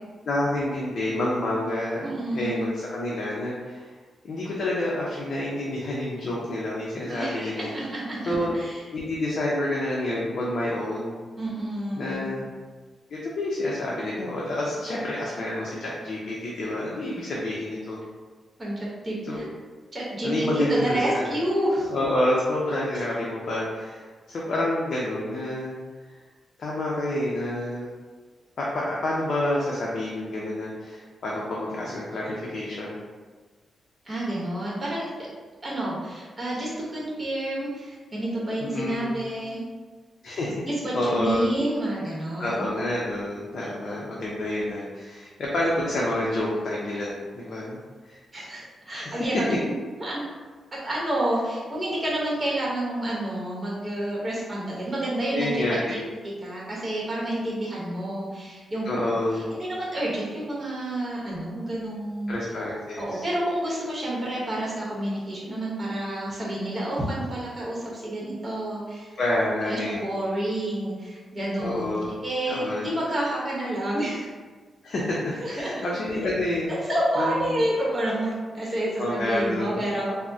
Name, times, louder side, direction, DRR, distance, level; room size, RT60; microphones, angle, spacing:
voice 1, 0.3-2.0 2.3-3.9 4.2-7.7 8.3-8.6 8.9-11.2 12.0-12.4 13.1-18.0 19.2-19.4 20.2-21.3 21.9-25.8 26.6-27.9 28.6-33.0 38.6-39.1 40.2-40.6 40.9-41.4 42.4-47.8 48.1-48.2 48.9-49.2 55.3-56.0 58.8-59.4 62.3-63.2 69.2-70.0 71.6-72.1 72.5-72.9 74.8-76.7 77.2-77.6 79.0-79.8, left 1 dB, 60° left, -5 dB, 0.5 m, -28 dB
voice 2, 2.0-2.7 7.1-8.8 11.4-12.3 18.6-19.4 19.9-21.9 34.0-35.1 35.6-39.6 40.6-42.7 48.3-49.5 50.0-50.2 50.8-56.0 56.4-58.9 59.3-62.3 63.0-69.2 69.6-71.9 72.2-74.3 75.4-75.7 76.9-80.1, right 1 dB, 25° right, -6 dB, 0.9 m, -29 dB
3.4 x 2.0 x 2.6 m, 1.4 s
cardioid pair, 105°, 0 cm